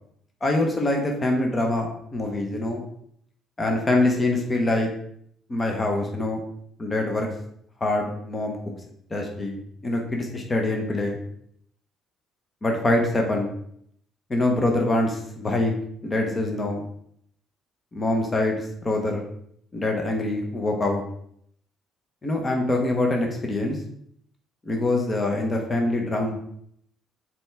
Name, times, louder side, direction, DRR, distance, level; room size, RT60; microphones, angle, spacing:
voice 1, 0.4-2.8 3.6-4.9 5.5-6.4 6.8-7.3 7.8-8.7 9.1-11.2 12.6-13.5 14.3-15.7 16.0-16.8 17.9-19.2 19.7-21.0 22.2-23.8 24.6-26.3, left 2 dB, 20° left, 1 dB, 1.0 m, -24 dB
7.0 x 4.4 x 3.4 m, 0.68 s
cardioid pair, 165°, 0 cm